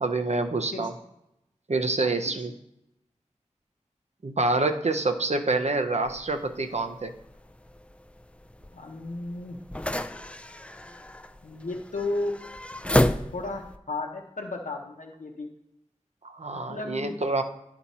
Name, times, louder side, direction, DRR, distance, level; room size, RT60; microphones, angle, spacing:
voice 1, 0.0-0.9 1.7-2.5 4.2-7.1 16.2-17.4, right 3 dB, 60° right, 6 dB, 0.7 m, -27 dB
sound 1, 6.1-13.8, left 1 dB, 10° left, 0.3 m, -32 dB
voice 2, 8.7-9.6 11.4-12.3 13.3-15.5 16.7-17.1, left 2 dB, 85° left, 0 dB, 0.8 m, -34 dB
10.5 x 4.3 x 4.2 m, 0.86 s
wide cardioid pair, 45°, 13 cm